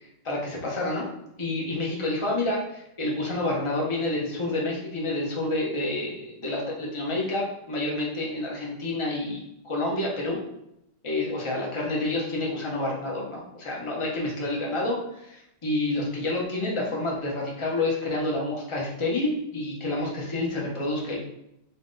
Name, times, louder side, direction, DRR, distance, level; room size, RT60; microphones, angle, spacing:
voice 1, 0.2-1.1 1.4-10.4 11.0-21.2, left 2 dB, 35° left, -3 dB, 0.4 m, -29 dB
3.6 x 2.8 x 3.9 m, 0.80 s
omnidirectional pair, 1.9 m